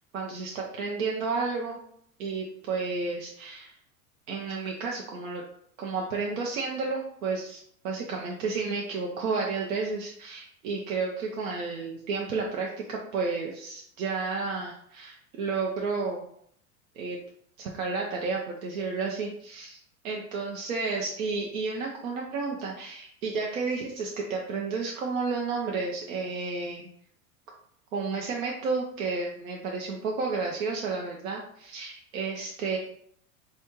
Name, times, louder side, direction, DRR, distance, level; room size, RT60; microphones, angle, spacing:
voice 1, 0.1-1.8 2.2-3.7 4.3-5.4 5.8-16.3 17.0-17.2 17.6-19.8 20.0-26.9 27.9-32.8, right 4 dB, 75° right, -1 dB, 0.7 m, -31 dB
4.1 x 2.4 x 3.0 m, 0.67 s
hypercardioid pair, 95°, 42 cm